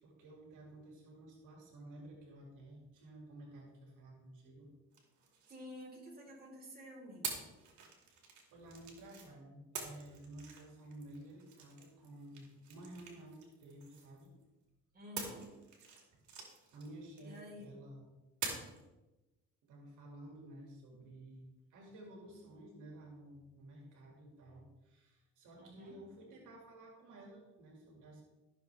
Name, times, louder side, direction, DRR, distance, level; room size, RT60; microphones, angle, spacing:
voice 1, 0.0-4.7 8.1-8.2 8.5-14.3 16.7-18.1 19.6-28.2, right 1 dB, 90° right, 0 dB, 2.3 m, -53 dB
sound 1, 4.9-6.4 7.2-9.3 9.7-14.4 15.2-17.6 18.4-18.8, right 5 dB, 70° right, 2.6 m, -47 dB
voice 2, 5.5-7.4 14.9-15.5 17.2-17.7 25.6-26.0, left 1 dB, 30° right, -2 dB, 4.0 m, -51 dB
14.5 x 6.9 x 3.4 m, 1.1 s
cardioid pair, 90°, 30 cm